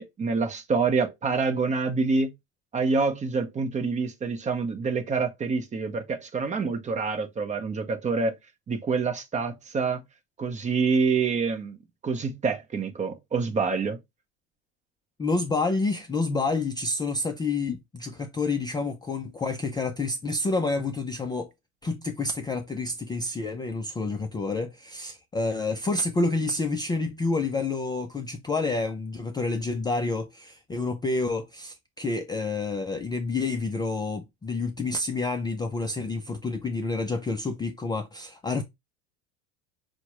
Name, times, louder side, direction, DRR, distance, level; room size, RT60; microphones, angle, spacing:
voice 1, 0.0-2.3 2.7-8.4 8.7-10.0 10.4-14.0, right 4 dB, 20° right, 0.6 m, -27 dB
voice 2, 15.2-21.5 21.8-38.6, left 3 dB, 15° left, 0.3 m, -29 dB
5.8 x 2.1 x 2.9 m
supercardioid pair, 120°, 32 cm